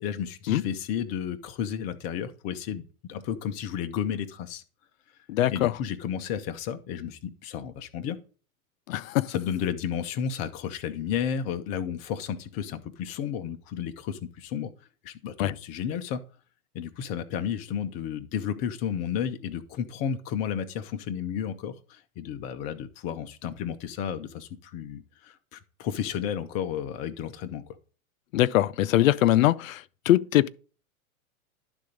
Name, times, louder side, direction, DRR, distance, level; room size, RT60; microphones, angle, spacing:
voice 1, 0.0-4.6 5.5-8.2 9.3-14.7 15.0-16.2 16.7-27.6, left 8 dB, 20° left, 0.4 m, -32 dB
voice 2, 5.3-5.7 8.9-9.3 15.4-15.5 28.3-30.5, left 14 dB, 65° left, 0.6 m, -22 dB
11.5 x 3.9 x 5.0 m
hypercardioid pair, 145°, 43 cm